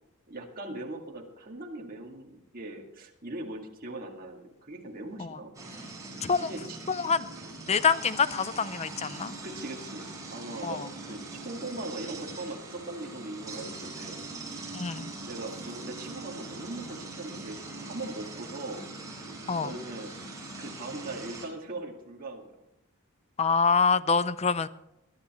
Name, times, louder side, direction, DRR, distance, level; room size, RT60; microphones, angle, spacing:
voice 1, 0.3-5.5 6.4-6.8 9.4-14.2 15.2-18.9 19.6-20.2 20.6-22.7, right 2 dB, 40° right, 0 dB, 2.0 m, -40 dB
sound 1, 5.5-21.5, right 2 dB, 15° right, 4.3 m, -42 dB
voice 2, 6.9-7.3 7.7-9.3 10.6-10.9 14.7-15.1 19.5-19.7 23.4-24.7, left 5 dB, 30° left, 15 dB, 0.5 m, -26 dB
21.0 x 11.5 x 3.1 m, 0.88 s
head